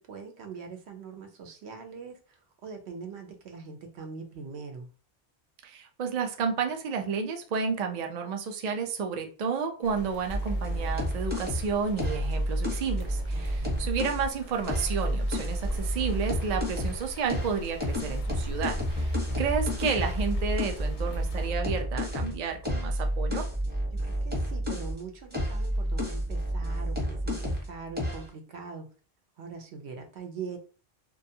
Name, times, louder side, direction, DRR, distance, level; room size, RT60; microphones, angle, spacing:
voice 1, 0.0-4.9 13.3-13.9 23.9-28.9 29.4-30.6, right 5 dB, 80° right, 4 dB, 0.9 m, -42 dB
voice 2, 5.6-23.4, right 6 dB, 55° right, 4 dB, 0.4 m, -31 dB
sound 1, 9.8-21.5, left 1 dB, 55° left, 0.6 m, -41 dB
Heavy Loop, 10.3-14.3 14.6-17.0 17.3-25.0 25.3-27.7 28.0-28.3, equal, 10° right, 0.7 m, -30 dB
2.5 x 2.3 x 2.6 m, 0.37 s
omnidirectional pair, 1.1 m